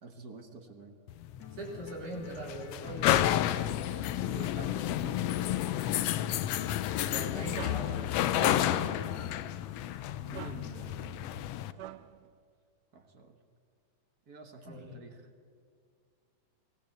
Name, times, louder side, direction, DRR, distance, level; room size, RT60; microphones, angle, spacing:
voice 1, 0.0-1.0 3.9-6.2 8.9-9.1 10.2-11.7 12.9-13.4 14.3-15.3, right 3 dB, 40° right, 6 dB, 1.5 m, -49 dB
sound 1, 1.1-11.7, left 12 dB, 80° left, 1.4 m, -31 dB
sound 2, 1.4-9.4, left 5 dB, 45° left, 1.5 m, -49 dB
voice 2, 1.6-3.3 7.0-8.2 8.5-9.1 14.7-15.0, right 1 dB, 70° right, -2 dB, 5.6 m, -41 dB
sound 3, 7.5-12.3, right 13 dB, 90° right, 2.3 m, -49 dB
24.0 x 18.5 x 7.9 m, 2.2 s
omnidirectional pair, 3.6 m